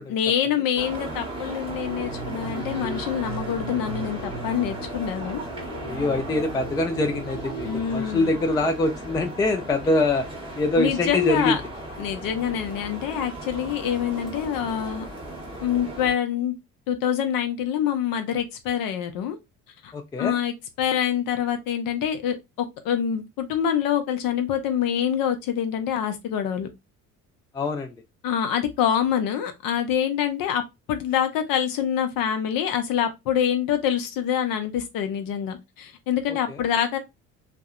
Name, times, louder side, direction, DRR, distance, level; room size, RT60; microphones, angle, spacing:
voice 1, 0.0-5.4 7.6-8.4 10.8-11.6 12.0-15.0 15.6-16.5 16.9-19.4 19.8-19.9 20.2-26.7 28.2-30.6 30.9-37.0, left 9 dB, 50° left, 0.7 m, -26 dB
sound 1, 0.7-16.1, right 1 dB, 10° right, 0.9 m, -36 dB
sound 2, 1.5-8.4, right 3 dB, 85° right, 0.9 m, -37 dB
voice 2, 5.8-10.3 10.6-11.6 19.9-20.3 27.5-28.0 36.3-36.6, left 2 dB, 10° left, 0.3 m, -24 dB
2.6 x 2.1 x 2.4 m
figure-of-eight pair, 55°, 43 cm